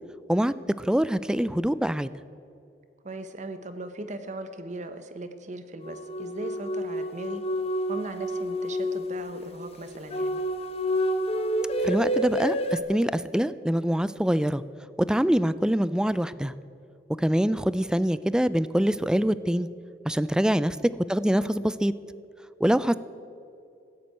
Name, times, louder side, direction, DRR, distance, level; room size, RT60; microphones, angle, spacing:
voice 1, 0.3-2.1 11.8-14.6 15.1-16.5 17.2-19.7 20.1-20.8 21.1-21.9 22.6-22.9, equal, 5° right, 16 dB, 0.3 m, -24 dB
voice 2, 3.0-7.4 7.9-10.4, right 2 dB, 40° right, 9 dB, 1.0 m, -38 dB
sound 1, 5.8-12.8, equal, 35° left, 1.0 m, -29 dB
15.5 x 8.5 x 8.9 m, 2.5 s
head